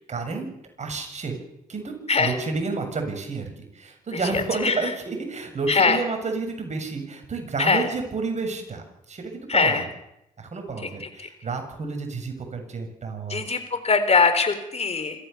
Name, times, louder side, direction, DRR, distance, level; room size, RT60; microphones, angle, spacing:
voice 1, 0.1-0.5 0.8-1.4 1.7-3.5 3.7-9.9 10.4-13.6, right 4 dB, 45° right, 4 dB, 7.2 m, -30 dB
voice 2, 4.3-4.7 5.7-6.0 7.6-7.8 9.5-9.8 10.8-10.9 13.3-15.3, left 4 dB, 40° left, 9 dB, 4.1 m, -22 dB
27.0 x 14.5 x 7.1 m, 0.82 s
supercardioid pair, 55°, 16 cm